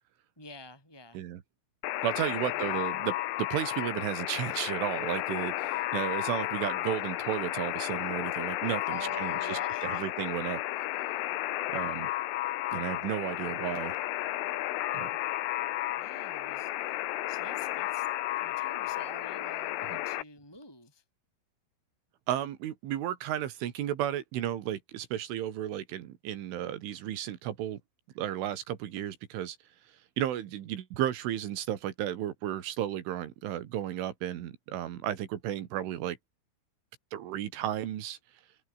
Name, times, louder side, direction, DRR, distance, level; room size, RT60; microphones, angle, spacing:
voice 1, 0.4-1.2 2.1-2.8 8.9-10.1 15.9-17.0 17.3-18.1 18.4-21.0, left 1 dB, 5° left, 6.0 m, -48 dB
Alarm, 1.8-20.2, left 16 dB, 85° left, 3.7 m, -33 dB
voice 2, 2.0-10.6 11.7-12.1 12.7-14.0 14.9-15.1 19.9-20.0 22.3-27.8 28.2-29.6 29.9-36.2 37.1-38.2, right 11 dB, 75° right, 4.4 m, -33 dB
omnidirectional pair, 5.7 m